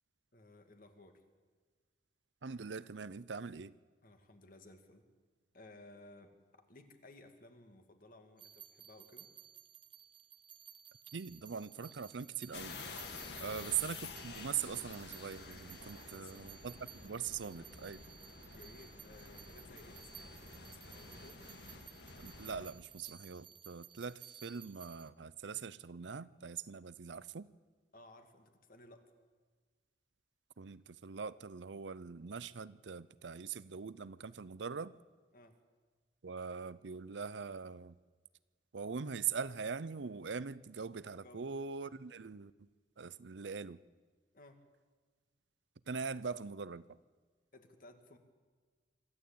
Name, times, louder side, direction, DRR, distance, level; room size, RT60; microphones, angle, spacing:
voice 1, 0.3-1.2 4.0-5.0 5.5-9.3 13.3-13.7 15.9-16.5 18.5-21.4 27.9-29.1 35.3-35.5 41.2-41.5 44.3-44.6 47.5-48.2, left 2 dB, 50° left, 2.1 m, -58 dB
voice 2, 2.4-3.8 11.1-12.8 13.4-16.7 17.0-18.0 22.2-27.5 30.6-34.9 36.2-38.0 38.7-42.5 43.0-43.8 45.9-47.0, right 6 dB, 90° right, 0.6 m, -42 dB
sound 1, 8.4-25.1, right 9 dB, 30° right, 0.8 m, -56 dB
sound 2, 12.5-22.7, left 4 dB, 70° left, 2.2 m, -50 dB
24.5 x 13.5 x 8.7 m
head